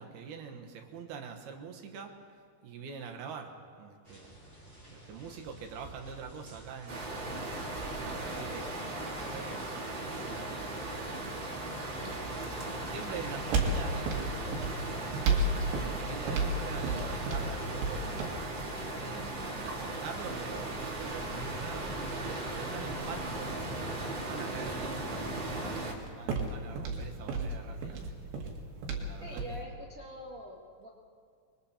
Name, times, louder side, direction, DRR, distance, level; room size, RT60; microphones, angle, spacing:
voice 1, 0.0-2.1 2.6-4.3 4.9-7.5 8.0-8.7 9.2-11.5 12.0-12.5 12.8-14.5 14.9-18.3 19.0-23.6 24.0-28.3 28.9-29.6, right 6 dB, 70° right, 4 dB, 3.1 m, -45 dB
sound 1, 4.0-15.1, right 2 dB, 5° left, 3.9 m, -51 dB
sound 2, 6.9-25.9, right 2 dB, 35° right, 2.3 m, -37 dB
voice 2, 8.3-8.8 29.2-30.9, right 1 dB, 50° right, -4 dB, 0.9 m, -45 dB
sound 3, 12.6-29.6, right 3 dB, 85° right, 4.3 m, -36 dB
27.5 x 22.5 x 4.4 m, 2.1 s
omnidirectional pair, 4.9 m